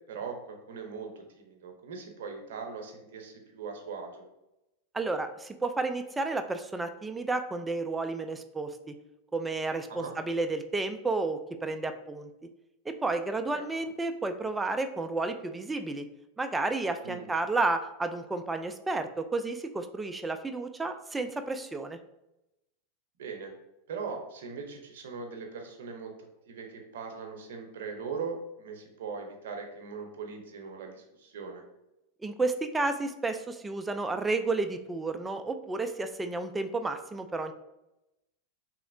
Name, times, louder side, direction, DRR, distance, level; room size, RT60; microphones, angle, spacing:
voice 1, 0.1-4.2 9.9-10.1 13.5-13.6 17.0-17.3 23.2-23.5 23.9-26.1 26.5-31.6, right 5 dB, 75° right, 3 dB, 0.6 m, -40 dB
voice 2, 4.9-8.9 9.3-12.3 12.9-16.0 16.4-22.0 32.2-37.5, right 3 dB, 10° right, 7 dB, 0.3 m, -31 dB
3.0 x 2.8 x 2.6 m, 0.91 s
hypercardioid pair, 110°, 0 cm